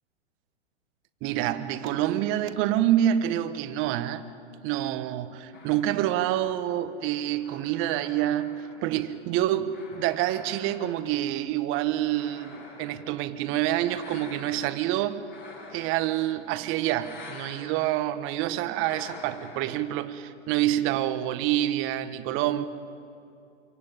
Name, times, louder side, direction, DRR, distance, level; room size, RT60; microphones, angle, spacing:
voice 1, 1.2-4.2 4.6-15.2 15.7-22.7, right 12 dB, 35° right, 1.4 m, -27 dB
sound 1, 5.5-9.2 9.7-11.2 11.8-13.1 13.9-14.9 15.3-16.5 16.9-17.7 18.8-19.8, left 3 dB, 30° left, 7.6 m, -47 dB
27.0 x 23.5 x 9.1 m
hypercardioid pair, 115°, 35 cm